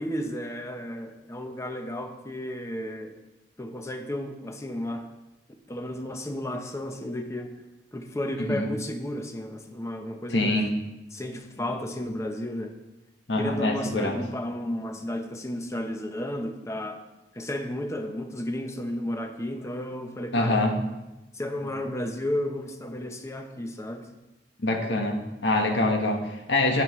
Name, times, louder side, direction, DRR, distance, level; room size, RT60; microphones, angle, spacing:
voice 1, 0.0-3.1 3.6-5.1 5.7-7.5 7.9-10.6 11.1-12.7 13.4-17.0 17.3-20.6 21.3-24.1, left 1 dB, 15° left, 5 dB, 0.8 m, -33 dB
voice 2, 8.4-8.7 10.3-10.7 13.3-14.2 20.3-20.8 24.6-26.8, left 2 dB, 85° left, 3 dB, 1.3 m, -25 dB
10.0 x 8.7 x 3.1 m, 1.0 s
head